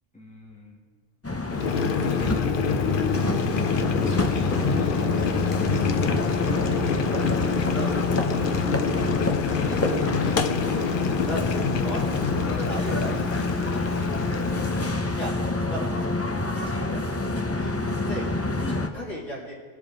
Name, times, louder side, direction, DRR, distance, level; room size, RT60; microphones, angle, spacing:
voice 1, 0.1-0.9 1.9-2.6 3.9-5.5 16.6-17.0 17.5-17.8 18.3-19.1, left 1 dB, 5° left, -4 dB, 2.5 m, -44 dB
sound 1, 1.2-18.9, left 2 dB, 20° left, 0.3 m, -27 dB
Boiling, 1.5-15.0, left 6 dB, 55° left, 0.7 m, -27 dB
voice 2, 6.4-8.1 8.3-8.7 9.5-10.1 10.4-10.6 11.2-11.5 11.8-12.0 12.3-14.6 14.9-17.2 17.9-19.5, equal, 75° left, -5 dB, 3.1 m, -38 dB
22.0 x 7.4 x 3.8 m, 1.5 s
omnidirectional pair, 1.3 m